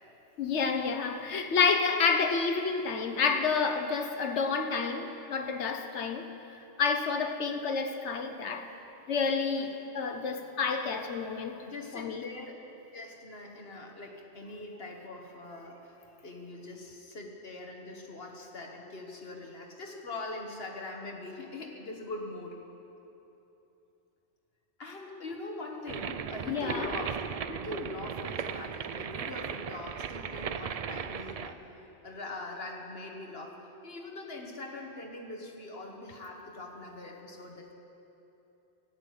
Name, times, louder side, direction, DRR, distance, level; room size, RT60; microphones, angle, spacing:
voice 1, 0.4-6.3 6.8-8.7 9.1-11.6 11.9-12.2 26.5-26.9, left 5 dB, 75° left, 7 dB, 1.2 m, -29 dB
voice 2, 11.6-12.6 12.9-15.9 16.2-22.6 24.8-27.2 27.5-37.7, left 2 dB, 55° left, 1 dB, 1.7 m, -42 dB
sound 1, 25.9-31.5, right 7 dB, 70° right, 0.3 m, -37 dB
13.5 x 8.4 x 9.5 m, 2.9 s
omnidirectional pair, 1.2 m